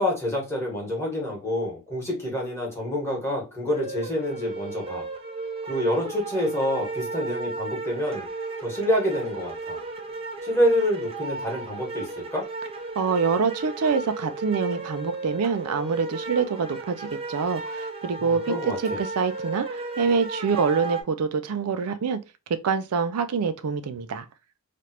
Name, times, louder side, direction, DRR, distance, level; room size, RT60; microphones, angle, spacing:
voice 1, 0.0-5.1 5.7-8.3 8.6-9.8 10.4-12.4 18.2-19.0, left 1 dB, 10° left, 1.5 m, -27 dB
sound 1, 3.7-21.0, right 3 dB, 25° right, 0.5 m, -34 dB
voice 2, 13.0-22.2 22.6-24.3, right 5 dB, 85° right, 0.4 m, -26 dB
3.2 x 2.5 x 2.8 m
head